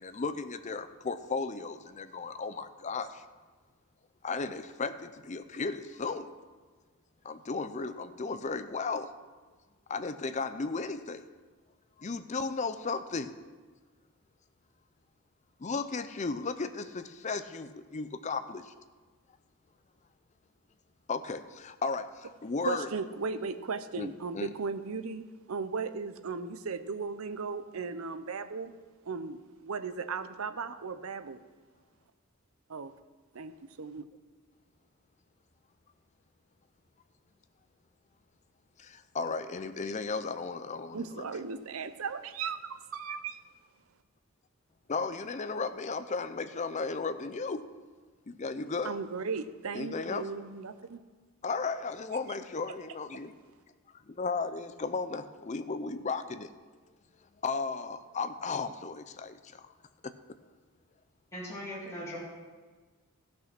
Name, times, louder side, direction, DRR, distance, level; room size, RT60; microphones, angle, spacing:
voice 1, 0.0-3.2 4.2-6.3 7.2-9.1 9.9-11.2 12.0-13.3 15.6-18.7 21.1-22.9 24.0-24.1 24.3-24.5 38.8-41.3 44.9-47.6 48.3-49.0 49.7-50.3 51.4-53.3 54.1-56.5 57.4-59.7 60.0-60.1, left 4 dB, 30° left, 10 dB, 0.5 m, -35 dB
voice 2, 22.6-28.7 29.1-31.4 32.7-32.9 33.3-33.5 33.8-34.0 40.9-43.4 48.8-51.0, right 5 dB, 70° right, 11 dB, 0.6 m, -36 dB
voice 3, 61.3-62.2, equal, 15° left, -8 dB, 3.0 m, -39 dB
14.5 x 6.1 x 6.0 m, 1.4 s
head